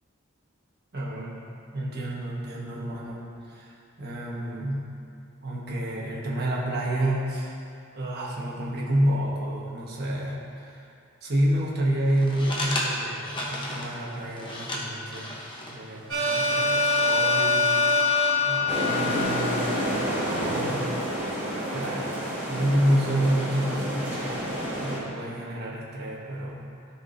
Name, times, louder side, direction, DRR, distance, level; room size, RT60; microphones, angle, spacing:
voice 1, 0.9-1.4 1.7-4.9 5.4-7.5 7.9-10.9 11.2-15.3 15.7-17.7 18.4-20.9 21.7-22.2 22.5-26.6, right 1 dB, 50° right, -5 dB, 1.4 m, -29 dB
sound 1, 12.1-19.4, left 1 dB, 25° left, 1.0 m, -36 dB
sound 2, 16.1-20.0, left 3 dB, 65° right, 1.5 m, -24 dB
sound 3, 18.7-25.0, equal, 10° right, 1.7 m, -29 dB
14.5 x 5.0 x 2.7 m, 2.5 s
head